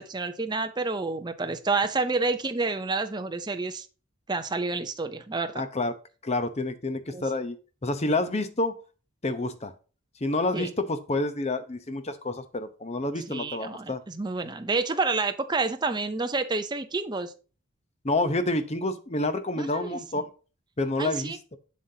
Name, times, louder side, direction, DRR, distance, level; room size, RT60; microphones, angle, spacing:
voice 1, 0.0-3.9 4.3-5.6 7.1-7.2 10.5-10.7 13.3-17.3 19.6-20.0 21.0-21.4, right 3 dB, 20° right, 8 dB, 0.6 m, -29 dB
voice 2, 5.6-5.9 6.2-7.6 7.8-8.7 9.2-9.7 10.2-14.0 18.0-20.2 20.8-21.6, left 2 dB, 30° left, 10 dB, 0.8 m, -28 dB
7.5 x 7.2 x 2.8 m, 0.34 s
head